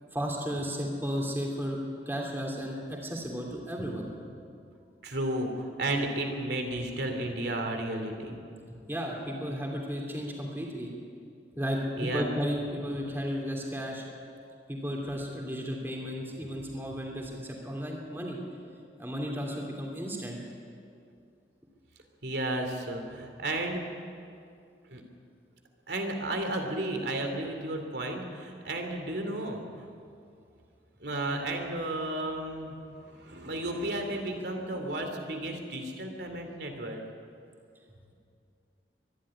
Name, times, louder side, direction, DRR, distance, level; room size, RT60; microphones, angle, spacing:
voice 1, 0.1-1.8 2.1-4.1 8.9-10.9 11.6-14.0 14.7-18.4 19.0-20.4, equal, 15° right, -1 dB, 2.9 m, -34 dB
voice 2, 5.0-8.4 12.0-12.3 13.2-13.3 22.2-23.9 24.9-25.0 25.9-29.9 31.0-32.7 33.0-37.0, right 1 dB, 75° right, 4 dB, 2.7 m, -33 dB
23.5 x 11.5 x 9.9 m, 2.4 s
head